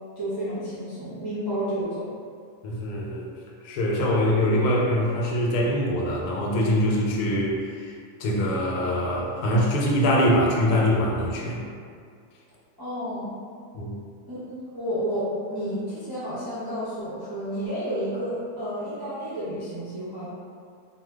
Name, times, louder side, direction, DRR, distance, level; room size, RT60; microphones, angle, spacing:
voice 1, 0.2-2.1 12.8-13.3 14.3-20.3, equal, 40° right, -12 dB, 0.3 m, -31 dB
voice 2, 2.6-3.3 3.6-7.9 8.2-11.6 13.7-13.9, equal, 85° left, -2 dB, 1.1 m, -23 dB
2.6 x 2.1 x 3.4 m, 2.2 s
omnidirectional pair, 1.6 m